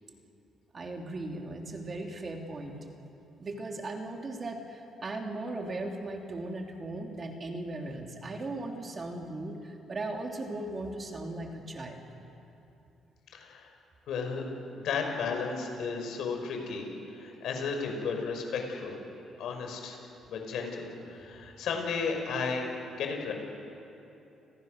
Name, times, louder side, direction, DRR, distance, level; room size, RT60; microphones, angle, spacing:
voice 1, 0.7-2.8 3.4-12.1, right 2 dB, 35° right, 2 dB, 3.0 m, -37 dB
voice 2, 13.3-13.7 14.1-14.4 14.7-19.0 19.4-20.0 20.3-23.3, left 5 dB, 75° left, 3 dB, 5.3 m, -34 dB
30.0 x 21.0 x 6.6 m, 2.9 s
cardioid pair, 120°, 0 cm